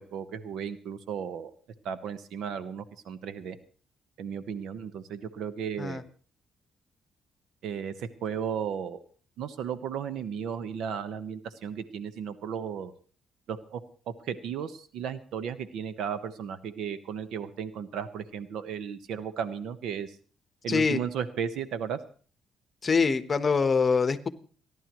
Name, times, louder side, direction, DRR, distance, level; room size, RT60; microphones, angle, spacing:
voice 1, 0.0-1.5 1.8-3.6 4.2-6.0 7.6-9.0 9.4-12.9 13.5-13.8 14.3-20.1 20.6-22.0, right 7 dB, 80° right, 12 dB, 1.0 m, -35 dB
voice 2, 20.7-21.0 22.8-24.3, left 5 dB, 35° left, 12 dB, 1.1 m, -24 dB
29.5 x 11.0 x 3.1 m, 0.41 s
cardioid pair, 90°, 0 cm